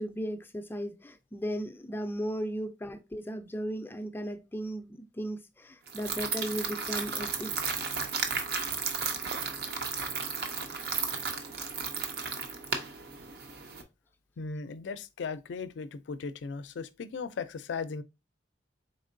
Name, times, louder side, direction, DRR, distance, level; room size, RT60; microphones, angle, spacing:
voice 1, 0.0-7.5, equal, 10° left, 0.4 m, -36 dB
sound 1, 5.9-13.8, right 5 dB, 60° right, 0.6 m, -34 dB
voice 2, 14.4-18.0, left 5 dB, 85° left, 0.4 m, -37 dB
4.0 x 3.6 x 2.5 m
head